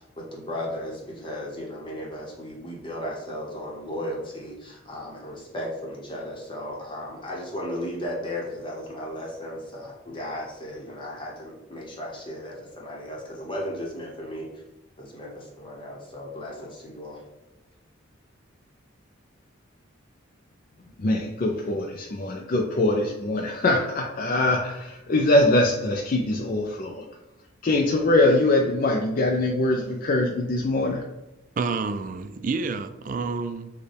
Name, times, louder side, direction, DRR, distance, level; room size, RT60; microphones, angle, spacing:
voice 1, 0.0-14.6 15.0-17.2, left 1 dB, 25° left, -3 dB, 0.9 m, -35 dB
voice 2, 21.0-27.0 27.6-31.0, left 2 dB, 45° left, 0 dB, 0.4 m, -23 dB
voice 3, 31.6-33.7, right 4 dB, 40° right, 10 dB, 0.3 m, -29 dB
6.5 x 2.2 x 3.3 m, 0.96 s
head